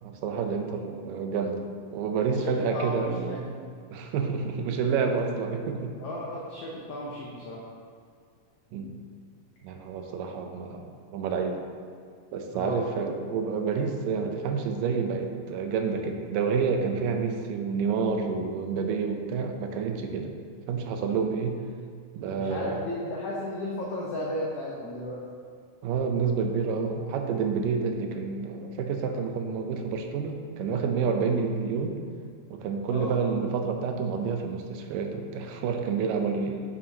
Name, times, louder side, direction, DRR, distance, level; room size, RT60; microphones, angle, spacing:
voice 1, 0.0-3.5 3.9-5.9 8.7-9.0 9.6-11.6 12.3-20.3 20.7-21.6 22.2-22.8 25.8-32.0 32.5-36.5, right 5 dB, 85° right, 4 dB, 2.4 m, -29 dB
voice 2, 2.3-3.4 6.0-7.6 12.5-12.9 22.4-25.2 32.9-33.2, left 1 dB, 85° left, -4 dB, 1.3 m, -34 dB
8.5 x 6.8 x 2.8 m, 2.2 s
omnidirectional pair, 3.8 m